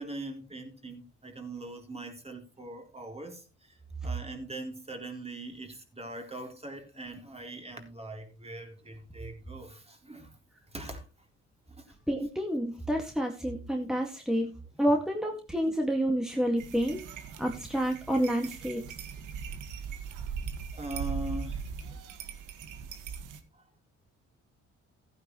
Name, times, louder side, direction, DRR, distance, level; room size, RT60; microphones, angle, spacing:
voice 1, 0.0-3.4 4.0-10.3 10.7-11.0 11.8-11.9 20.7-21.7, right 2 dB, 20° right, 3.8 m, -41 dB
voice 2, 12.1-14.5 14.8-17.0 17.4-18.8, equal, ahead, 2.1 m, -29 dB
sound 1, 16.6-23.4, right 6 dB, 85° right, 1.8 m, -39 dB
15.5 x 9.5 x 3.2 m
cardioid pair, 90°, 30 cm